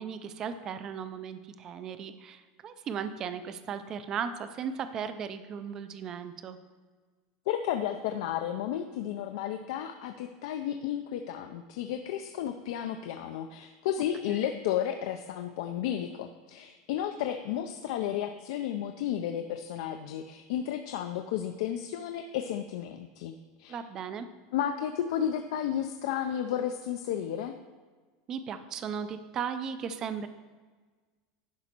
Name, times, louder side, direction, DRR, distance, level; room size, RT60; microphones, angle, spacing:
voice 1, 0.0-6.6 14.3-14.5 23.7-24.3 28.3-30.3, right 7 dB, 25° right, 10 dB, 0.4 m, -36 dB
voice 2, 7.5-23.8 24.5-27.6, left 10 dB, 60° left, 7 dB, 0.5 m, -33 dB
11.0 x 5.0 x 4.4 m, 1.4 s
supercardioid pair, 175°, 2 cm